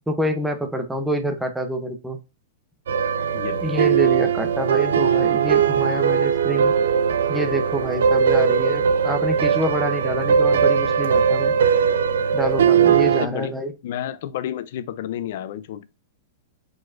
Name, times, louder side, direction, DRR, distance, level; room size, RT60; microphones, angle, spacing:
voice 1, 0.0-2.2 3.6-6.7 7.3-11.5 12.3-13.7, right 1 dB, 5° right, 0.6 m, -26 dB
sound 1, 2.9-13.3, right 7 dB, 90° right, 0.5 m, -19 dB
voice 2, 3.3-3.6 13.1-13.5 13.8-15.8, left 10 dB, 55° left, 0.4 m, -30 dB
4.8 x 4.0 x 2.4 m
supercardioid pair, 165°, 0 cm